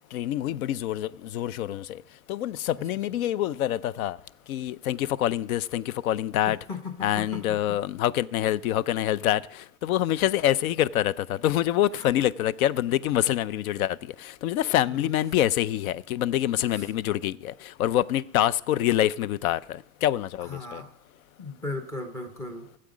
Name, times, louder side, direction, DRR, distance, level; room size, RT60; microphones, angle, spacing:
voice 1, 0.1-2.0 2.3-4.2 4.5-6.6 7.0-20.8, left 12 dB, 80° left, 0.6 m, -26 dB
voice 2, 6.5-7.8 11.9-12.1 14.9-15.1 16.7-16.9 20.4-20.9 21.4-22.7, left 3 dB, 10° left, 0.4 m, -37 dB
16.0 x 7.7 x 5.0 m
supercardioid pair, 150°, 42 cm